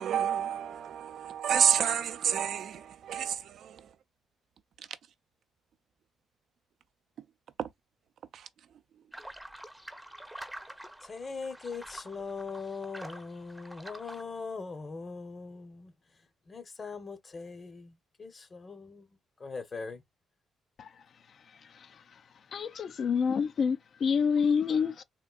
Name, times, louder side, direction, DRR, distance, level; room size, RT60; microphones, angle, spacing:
voice 1, 0.0-3.8, right 9 dB, 65° right, 0.4 m, -29 dB
sound 1, 9.1-14.2, right 1 dB, 5° right, 0.6 m, -47 dB
voice 2, 11.0-20.0, left 4 dB, 35° left, 0.7 m, -41 dB
voice 3, 22.5-25.0, left 6 dB, 55° left, 0.3 m, -27 dB
3.6 x 2.5 x 2.3 m
cardioid pair, 90°, 0 cm